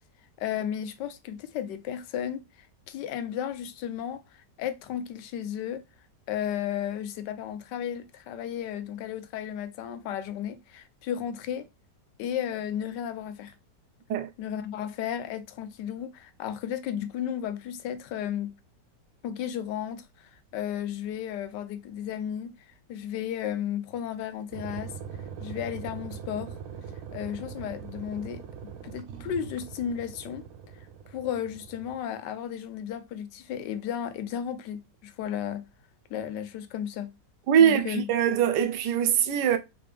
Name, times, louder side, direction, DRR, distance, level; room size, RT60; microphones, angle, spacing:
voice 1, 0.4-5.8 6.3-11.7 12.2-13.5 14.4-18.5 19.2-24.9 25.4-26.6 27.1-28.4 28.8-30.4 30.8-35.6 36.1-37.1 37.6-38.1, left 9 dB, 85° left, 1.2 m, -34 dB
sound 1, 24.5-32.0, right 7 dB, 65° right, 0.8 m, -41 dB
voice 2, 37.5-39.6, right 8 dB, 85° right, 1.3 m, -22 dB
4.6 x 3.4 x 3.3 m
omnidirectional pair, 1.9 m